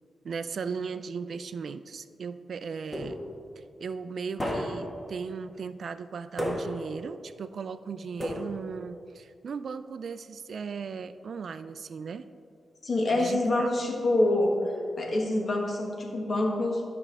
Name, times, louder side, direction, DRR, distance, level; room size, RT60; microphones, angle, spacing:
voice 1, 0.2-3.2 3.6-12.3 13.2-13.7, right 5 dB, 65° right, 12 dB, 0.3 m, -37 dB
sound 1, 2.9-3.5 4.4-5.0 6.4-7.0 8.2-8.8, equal, 15° left, 1.4 m, -33 dB
voice 2, 12.8-14.6 15.0-16.8, left 2 dB, 50° left, 0 dB, 1.4 m, -26 dB
12.0 x 5.9 x 3.4 m, 2.4 s
wide cardioid pair, 100°, 0 cm